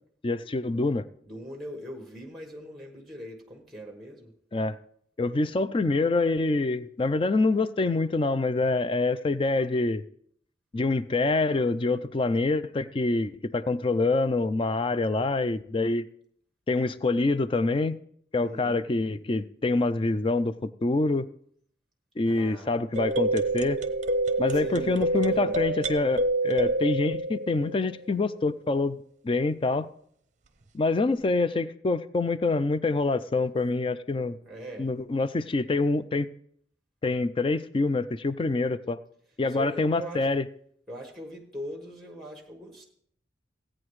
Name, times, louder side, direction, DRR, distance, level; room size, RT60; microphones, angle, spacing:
voice 1, 0.2-1.0 4.5-4.8 5.2-10.0 10.7-16.0 16.7-18.0 18.3-21.3 22.2-23.8 24.4-29.0 29.2-29.9 30.7-34.4 34.8-36.3 37.0-39.0 39.4-40.4, left 3 dB, 30° left, 14 dB, 0.3 m, -26 dB
voice 2, 1.2-4.3 18.4-18.8 22.2-22.8 24.5-25.8 34.4-34.9 39.5-40.3 40.9-42.9, equal, ahead, 1 dB, 1.2 m, -41 dB
sound 1, 22.9-28.1, right 2 dB, 40° right, 0.6 m, -27 dB
16.0 x 8.7 x 3.1 m, 0.66 s
head